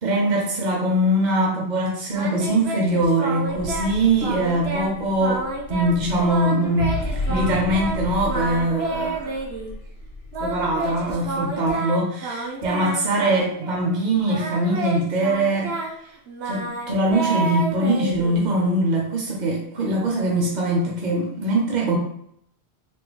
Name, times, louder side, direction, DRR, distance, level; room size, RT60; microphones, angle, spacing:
voice 1, 0.0-5.4 5.7-6.9 7.3-9.4 10.4-15.9 16.4-22.0, right 1 dB, 55° right, -2 dB, 0.6 m, -22 dB
Singing, 2.1-3.9 4.2-4.9 5.2-8.0 8.3-9.7 10.3-13.9 14.2-18.7, right 2 dB, 80° right, 0.9 m, -30 dB
sound 1, 3.4-11.5, left 2 dB, 55° left, 0.7 m, -34 dB
3.5 x 2.2 x 2.9 m, 0.71 s
omnidirectional pair, 1.1 m